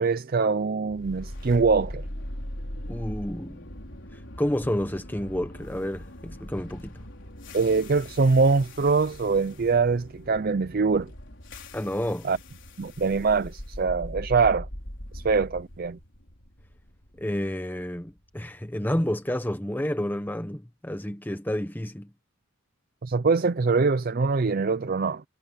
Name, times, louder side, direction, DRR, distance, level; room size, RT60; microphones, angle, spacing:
voice 1, 0.0-2.0 7.5-11.1 12.2-12.4 12.8-14.7 15.1-16.0 23.0-25.2, right 4 dB, 45° right, 0.5 m, -23 dB
sound 1, 0.9-19.0, left 1 dB, 60° left, 4.9 m, -41 dB
voice 2, 2.9-3.6 4.1-7.0 11.7-12.3 17.2-22.1, left 1 dB, 10° left, 0.8 m, -30 dB
head